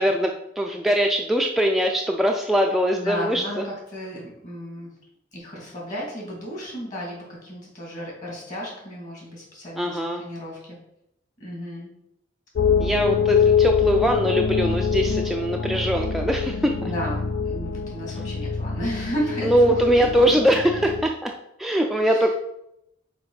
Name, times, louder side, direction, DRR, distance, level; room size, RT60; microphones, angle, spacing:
voice 1, 0.0-3.7 9.8-10.2 12.8-16.9 19.4-21.3 21.6-22.3, equal, ahead, 1 dB, 0.3 m, -22 dB
voice 2, 3.0-4.9 5.3-10.8 11.4-11.9 16.8-19.9 22.1-22.3, equal, 40° left, -3 dB, 2.5 m, -33 dB
sound 1, 12.6-21.0, left 6 dB, 70° left, 0.4 m, -24 dB
5.1 x 4.8 x 4.8 m, 0.81 s
head